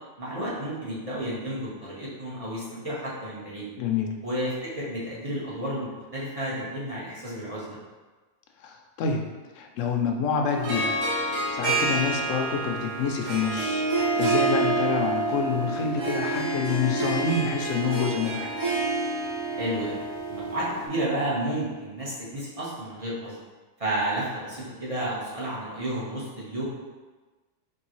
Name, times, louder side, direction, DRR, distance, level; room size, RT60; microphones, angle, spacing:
voice 1, 0.2-3.7 4.2-7.8 19.5-20.0 20.3-23.4 23.8-26.6, right 1 dB, 30° right, -7 dB, 1.2 m, -31 dB
voice 2, 3.8-4.1 8.6-9.2 9.6-10.9 11.5-18.5, left 6 dB, 75° left, 3 dB, 0.9 m, -27 dB
Harp, 10.5-20.9, right 3 dB, 90° right, 1.3 m, -28 dB
4.5 x 3.1 x 3.0 m, 1.3 s
omnidirectional pair, 1.3 m